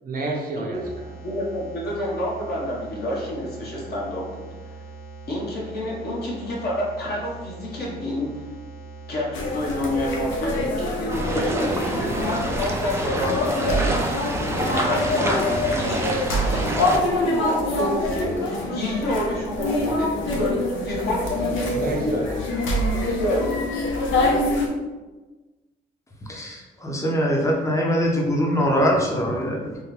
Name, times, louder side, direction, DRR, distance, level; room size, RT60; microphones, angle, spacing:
voice 1, 0.0-1.1 21.7-23.0, right 2 dB, 45° right, 0 dB, 0.7 m, -31 dB
sound 1, 0.7-10.2, right 3 dB, 30° left, 1.1 m, -41 dB
voice 2, 1.2-4.8 5.3-8.3 9.1-14.0 14.7-22.3 22.9-23.5, left 1 dB, 50° left, -5 dB, 1.2 m, -28 dB
sound 2, 9.3-24.7, left 1 dB, 75° left, 0.7 m, -25 dB
sound 3, 11.1-17.0, right 1 dB, 15° right, 0.4 m, -27 dB
voice 3, 26.2-29.8, equal, 15° left, -1 dB, 0.7 m, -23 dB
3.4 x 2.2 x 3.3 m, 1.2 s
cardioid pair, 90°, 20 cm